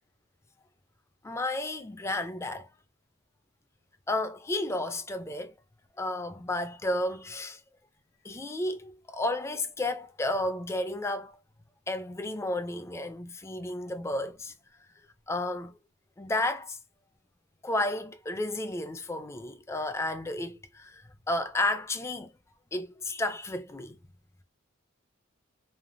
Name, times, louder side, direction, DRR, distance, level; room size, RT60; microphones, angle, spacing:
voice 1, 1.2-2.7 4.1-5.5 6.0-7.6 8.2-11.4 11.9-14.5 15.3-15.8 16.2-16.8 17.6-22.3 22.7-24.0, left 2 dB, 15° left, 0.3 m, -32 dB
3.3 x 2.1 x 2.4 m
head